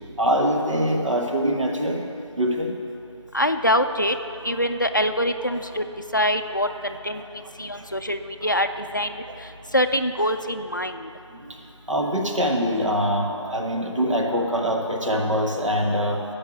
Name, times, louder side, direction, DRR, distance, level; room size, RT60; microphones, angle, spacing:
voice 1, 0.2-2.8 5.5-5.6 7.2-7.3 7.8-7.9 11.3-11.6 11.9-16.2, equal, 80° right, 1 dB, 1.2 m, -24 dB
voice 2, 3.3-4.1 4.4-5.8 6.1-7.2 7.6-9.1 9.7-11.1, equal, 40° left, 7 dB, 0.3 m, -24 dB
9.5 x 4.7 x 7.9 m, 2.7 s
figure-of-eight pair, 180°, 16 cm